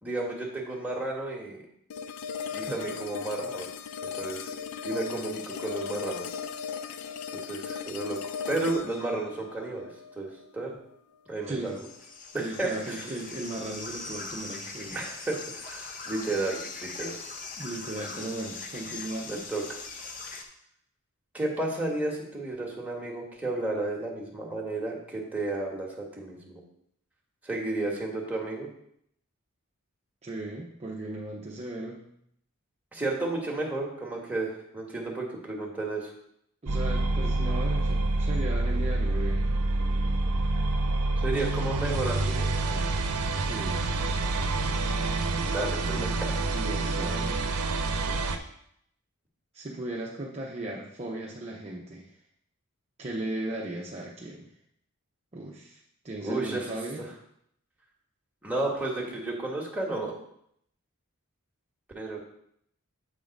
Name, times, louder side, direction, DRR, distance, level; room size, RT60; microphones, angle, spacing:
voice 1, 0.0-1.6 2.5-3.7 4.0-4.5 4.8-6.3 7.4-9.9 10.1-10.8 11.3-11.8 12.3-13.0 14.9-17.2 19.3-19.8 21.3-26.6 27.4-28.7 32.9-36.1 41.2-42.9 45.5-46.1 56.2-56.7 58.4-60.1 61.9-62.2, right 2 dB, 5° right, -3 dB, 1.3 m, -32 dB
sound 1, 1.9-10.9, left 7 dB, 75° left, 0.4 m, -37 dB
voice 2, 11.5-11.8 12.3-15.0 17.6-19.4 30.2-32.1 36.6-39.5 43.3-43.9 45.8-47.4 49.5-52.2 53.0-54.5 55.3-57.1, right 1 dB, 30° right, -3 dB, 0.7 m, -37 dB
sound 2, 11.6-20.4, left 4 dB, 40° left, 0.7 m, -41 dB
sound 3, 36.7-48.4, right 2 dB, 75° right, 0.7 m, -27 dB
7.9 x 3.7 x 5.1 m, 0.71 s
head